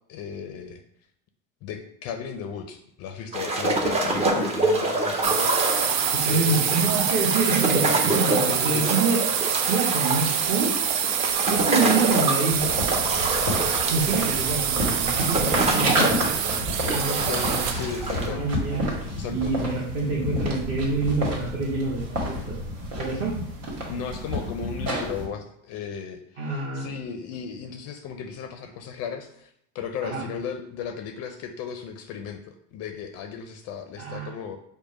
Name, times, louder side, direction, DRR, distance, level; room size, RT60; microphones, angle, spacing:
voice 1, 0.1-0.8 1.6-5.5 6.2-6.8 8.5-8.9 17.2-18.4 19.2-19.5 23.9-34.6, left 7 dB, 45° left, 6 dB, 0.5 m, -35 dB
sound 1, 3.3-18.3, right 2 dB, 15° right, 0.6 m, -27 dB
sound 2, 5.2-17.9, right 9 dB, 85° right, 0.6 m, -26 dB
voice 2, 6.1-9.2 9.7-10.7 11.5-12.6 13.9-16.3 16.6-17.7 18.1-18.9 19.3-22.6 23.0-23.3 26.4-26.9 30.0-30.2 34.0-34.3, right 3 dB, 35° right, -5 dB, 1.1 m, -27 dB
sound 3, 12.5-25.3, equal, 70° right, 1.7 m, -30 dB
5.0 x 2.2 x 4.8 m, 0.72 s
supercardioid pair, 135°, 37 cm